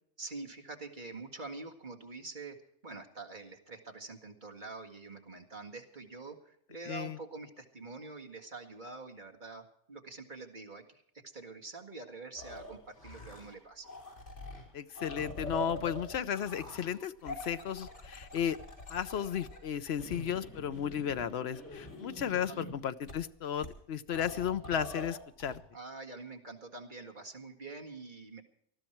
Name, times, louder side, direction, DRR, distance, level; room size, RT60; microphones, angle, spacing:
voice 1, 0.2-2.6 2.8-13.9 22.3-22.8 25.7-28.4, right 3 dB, 45° right, 2 dB, 2.1 m, -46 dB
voice 2, 6.9-7.2 14.7-18.6 18.9-25.6, left 9 dB, 65° left, 12 dB, 1.0 m, -34 dB
sound 1, 12.4-13.6 13.8-22.7 23.1-23.2 23.6-23.7 24.1-25.6, left 1 dB, 85° left, 4.2 m, -44 dB
19.5 x 13.0 x 4.5 m, 0.68 s
omnidirectional pair, 1.2 m